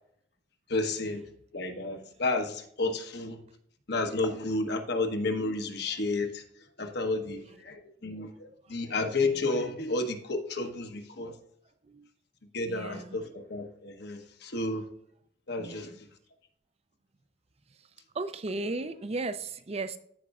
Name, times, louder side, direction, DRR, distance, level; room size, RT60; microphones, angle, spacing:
voice 1, 0.7-1.2 1.5-3.4 3.9-6.4 6.8-11.3 12.5-14.8 15.5-15.9, left 2 dB, 60° left, 5 dB, 1.1 m, -31 dB
voice 2, 12.7-13.2 15.6-16.0 18.1-20.0, right 3 dB, 35° right, 12 dB, 0.5 m, -35 dB
14.0 x 5.2 x 2.4 m, 0.69 s
head